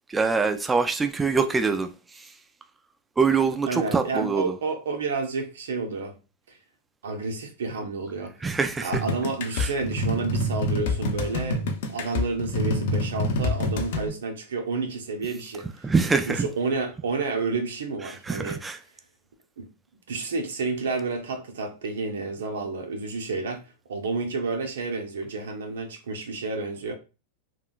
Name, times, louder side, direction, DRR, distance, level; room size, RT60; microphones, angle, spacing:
voice 1, 0.1-2.3 3.2-4.5 8.4-9.0 9.6-9.7 15.8-16.5 18.3-18.8, right 4 dB, 15° right, 0.3 m, -24 dB
voice 2, 3.7-6.1 6.5-6.6 7.0-8.3 8.8-11.6 11.9-15.7 16.3-18.6 19.6-19.7 20.1-26.9, right 4 dB, 85° right, 0.8 m, -30 dB
sound 1, 8.9-14.1, left 1 dB, 70° left, 0.7 m, -27 dB
3.5 x 2.2 x 2.3 m
hypercardioid pair, 120°, 0 cm